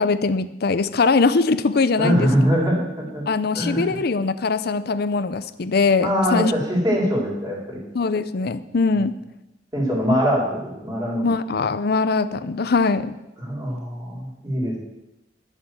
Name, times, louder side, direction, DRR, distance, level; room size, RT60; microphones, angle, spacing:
voice 1, 0.0-2.3 3.3-6.5 7.9-9.1 11.2-13.2, left 4 dB, 60° left, 13 dB, 0.6 m, -21 dB
voice 2, 2.0-3.2 3.5-4.0 6.0-7.8 9.7-11.3 13.4-14.8, equal, 20° right, -3 dB, 4.0 m, -22 dB
11.0 x 7.1 x 7.7 m, 0.94 s
head